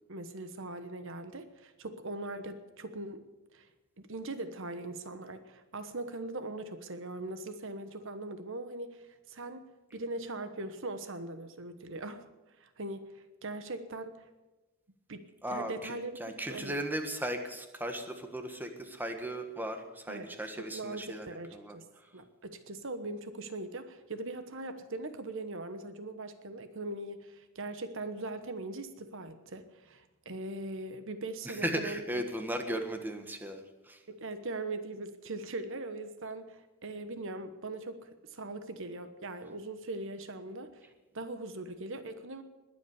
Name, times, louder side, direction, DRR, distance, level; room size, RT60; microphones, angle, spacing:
voice 1, 0.1-3.2 3.5-3.7 4.0-9.6 9.9-12.2 12.6-14.3 15.1-15.2 15.5-16.1 16.5-16.7 20.1-20.3 20.6-21.9 22.1-32.2 34.1-40.9 41.1-42.4, right 2 dB, 60° right, 10 dB, 1.2 m, -40 dB
voice 2, 15.4-21.3 21.5-21.8 31.4-34.0, right 1 dB, 10° right, 6 dB, 1.5 m, -36 dB
20.5 x 8.4 x 8.1 m, 1.1 s
head